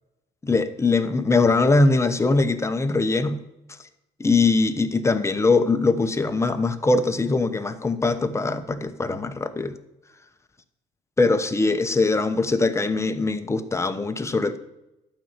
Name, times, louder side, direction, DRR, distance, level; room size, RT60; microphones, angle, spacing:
voice 1, 0.4-3.4 4.2-9.8 11.2-14.6, left 3 dB, 15° left, 9 dB, 1.1 m, -22 dB
12.0 x 5.6 x 9.0 m, 0.91 s
cardioid pair, 110°, 17 cm